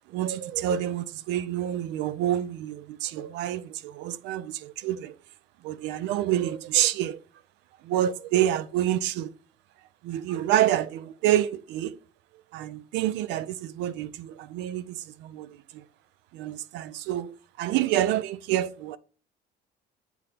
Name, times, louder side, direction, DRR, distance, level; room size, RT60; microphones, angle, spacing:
voice 1, 0.1-5.1 5.6-7.2 7.8-9.3 10.0-11.9 12.5-15.8 16.3-19.0, right 12 dB, 70° right, 0.5 m, -28 dB
7.9 x 2.8 x 4.9 m
cardioid pair, 130°, 19 cm